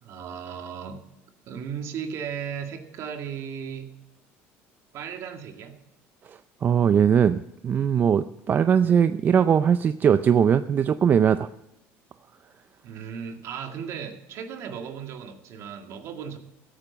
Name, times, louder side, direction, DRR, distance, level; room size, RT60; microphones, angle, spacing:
voice 1, 0.0-1.0 1.5-3.9 4.9-5.8 12.8-16.4, right 7 dB, 55° right, 6 dB, 2.1 m, -36 dB
voice 2, 6.2-7.4 7.6-11.5, right 8 dB, 35° right, 12 dB, 0.5 m, -20 dB
15.0 x 9.1 x 7.1 m, 0.85 s
cardioid pair, 125°, 6 cm